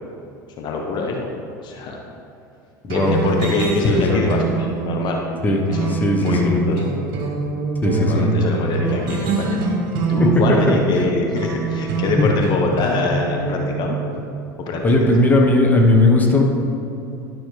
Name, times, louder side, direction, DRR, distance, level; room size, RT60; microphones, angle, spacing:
voice 1, 0.6-1.3 1.6-2.0 2.8-5.2 5.4-6.9 7.9-9.6 10.1-13.9 14.6-15.1, left 3 dB, 45° left, 1 dB, 1.0 m, -24 dB
voice 2, 2.8-3.2 3.9-4.3 5.4-5.6 5.9-6.6 7.8-8.3 10.2-10.3 10.7-10.8 12.2-12.3 14.8-16.4, left 2 dB, 15° left, 1 dB, 1.2 m, -17 dB
sound 1, 2.9-14.2, right 4 dB, 50° right, 1.7 m, -25 dB
11.5 x 6.1 x 3.3 m, 2.7 s
hypercardioid pair, 75°, 10 cm